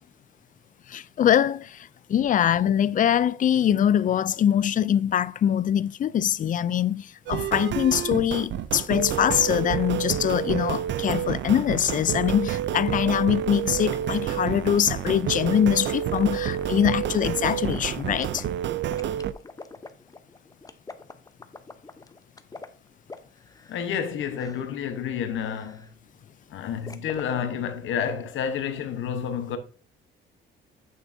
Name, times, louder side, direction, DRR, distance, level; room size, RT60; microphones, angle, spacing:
voice 1, 0.9-18.5, left 9 dB, 40° left, 0.4 m, -23 dB
sound 1, 7.3-19.3, right 11 dB, 65° right, 0.5 m, -29 dB
sound 2, 15.8-18.4 18.9-24.1 24.3-24.8 25.4-25.9 26.9-27.3, left 3 dB, 20° left, 0.8 m, -44 dB
voice 2, 23.7-25.9 26.5-29.6, left 8 dB, 75° left, 1.1 m, -30 dB
8.5 x 7.1 x 2.7 m
cardioid pair, 90°, 20 cm